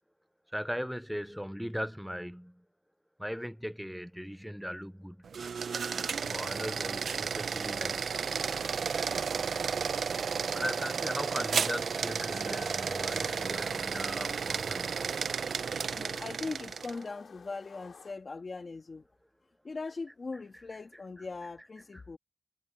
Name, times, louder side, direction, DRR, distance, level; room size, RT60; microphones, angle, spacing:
voice 1, 0.5-2.6 3.2-5.3 6.2-8.1 10.5-15.3 21.9-22.0, equal, ahead, 0.5 m, -38 dB
sound 1, 5.2-17.0, right 6 dB, 80° right, 0.6 m, -33 dB
sound 2, 8.1-18.1, left 5 dB, 65° left, 4.9 m, -52 dB
voice 2, 15.9-19.0 19.6-22.2, left 3 dB, 40° left, 2.3 m, -40 dB
wide cardioid pair, 140°, 0 cm